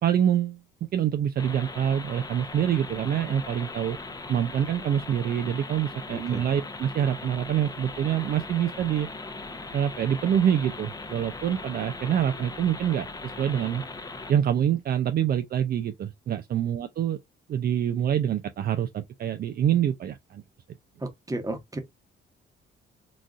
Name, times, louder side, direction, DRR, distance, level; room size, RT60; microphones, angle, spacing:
voice 1, 0.0-0.6 0.9-4.0 4.3-9.1 9.7-13.8 14.3-17.2 17.5-20.4, right 9 dB, 50° right, 0.4 m, -26 dB
sound 1, 1.4-14.3, left 3 dB, 20° left, 0.7 m, -39 dB
voice 2, 6.1-6.4 21.0-21.8, right 1 dB, 15° right, 1.0 m, -33 dB
3.9 x 2.4 x 2.3 m
cardioid pair, 90°, 20 cm